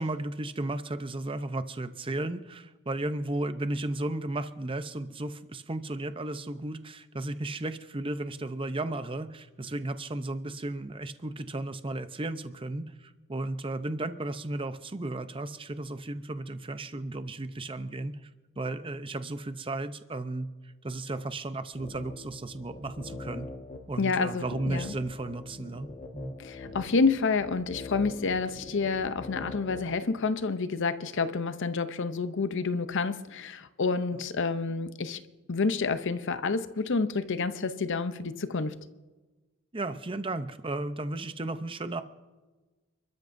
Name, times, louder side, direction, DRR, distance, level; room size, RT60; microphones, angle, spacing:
voice 1, 0.0-18.3 18.6-23.5 23.9-26.3 39.7-42.0, right 2 dB, 25° right, 0.7 m, -34 dB
sound 1, 21.7-29.9, left 3 dB, 35° left, 1.5 m, -44 dB
voice 2, 24.0-24.9 26.4-35.2 35.5-38.8, left 4 dB, 55° left, 0.7 m, -29 dB
29.5 x 13.0 x 2.7 m
head